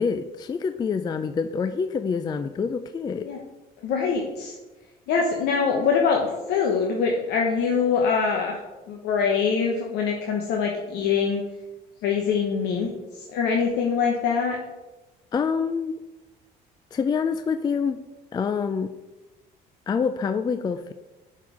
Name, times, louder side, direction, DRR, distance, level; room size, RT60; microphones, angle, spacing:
voice 1, 0.0-3.3 15.3-16.0 16.9-18.0 18.3-18.9 19.9-20.9, left 5 dB, 25° left, 10 dB, 0.3 m, -26 dB
voice 2, 3.8-4.5 5.1-8.6 8.9-11.4 12.0-12.9 13.2-14.6, left 5 dB, 80° left, 0 dB, 1.0 m, -24 dB
7.2 x 4.6 x 4.8 m, 1.1 s
cardioid pair, 110°, 17 cm